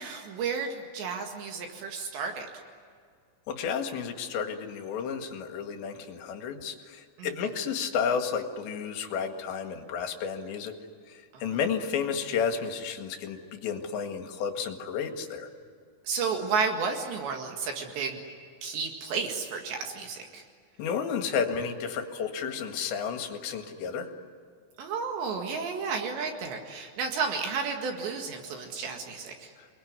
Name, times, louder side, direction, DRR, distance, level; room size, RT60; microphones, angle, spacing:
voice 1, 0.0-2.5 7.2-7.3 11.3-11.6 16.0-18.2 18.6-20.4 24.8-29.5, right 5 dB, 70° right, 3 dB, 4.0 m, -32 dB
voice 2, 3.5-10.8 11.1-15.5 20.8-24.1, left 6 dB, 70° left, 5 dB, 3.9 m, -32 dB
28.5 x 21.5 x 9.7 m, 2.1 s
omnidirectional pair, 5.5 m